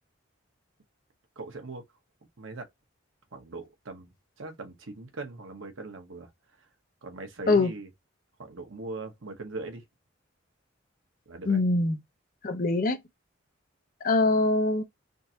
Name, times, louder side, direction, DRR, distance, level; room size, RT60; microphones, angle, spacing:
voice 1, 1.4-1.8 2.4-2.7 3.3-6.3 7.0-7.9 8.4-9.8 11.3-11.6, right 3 dB, 80° right, 1.0 m, -40 dB
voice 2, 11.4-12.0 12.4-13.0 14.0-14.8, left 2 dB, 45° left, 0.6 m, -23 dB
3.6 x 2.6 x 2.7 m
head